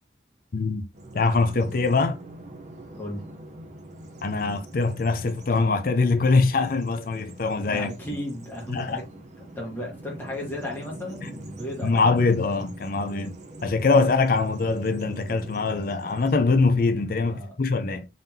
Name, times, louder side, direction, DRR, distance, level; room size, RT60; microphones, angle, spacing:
voice 1, 0.5-0.8 1.1-2.2 4.2-7.9 8.7-9.0 11.8-13.4 13.6-18.1, left 3 dB, 50° left, 0.5 m, -23 dB
Bird vocalization bird call bird song, 0.9-16.7, right 2 dB, 40° right, 0.7 m, -44 dB
voice 2, 7.7-9.0 9.4-12.1 17.3-17.5, left 1 dB, 10° left, 1.2 m, -35 dB
3.8 x 3.5 x 2.7 m
head